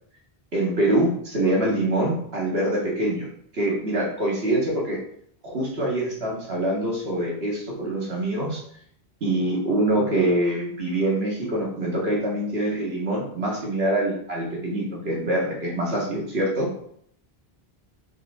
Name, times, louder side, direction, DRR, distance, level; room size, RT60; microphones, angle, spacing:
voice 1, 0.5-3.3 3.5-5.0 5.4-8.6 9.2-16.7, right 1 dB, 85° right, -3 dB, 2.1 m, -24 dB
5.3 x 5.1 x 3.6 m, 0.65 s
omnidirectional pair, 1.0 m